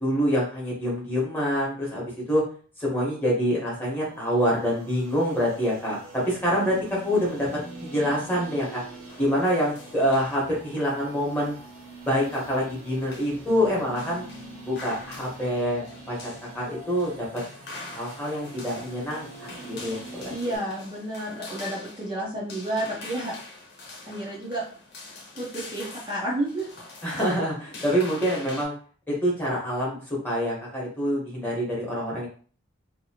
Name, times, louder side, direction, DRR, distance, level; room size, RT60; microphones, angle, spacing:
voice 1, 0.0-2.4 2.8-7.5 7.8-8.8 9.2-11.5 12.0-14.3 14.6-17.3 17.9-20.3 27.0-28.7 29.1-32.3, equal, 10° left, -5 dB, 1.1 m, -26 dB
sound 1, 3.7-20.6, right 2 dB, 80° right, 0.9 m, -44 dB
sound 2, 9.1-28.6, left 2 dB, 50° left, 0.9 m, -45 dB
voice 2, 20.3-23.3 24.1-24.6 25.3-26.7, right 1 dB, 20° right, -6 dB, 0.7 m, -31 dB
2.8 x 2.6 x 2.8 m, 0.42 s
head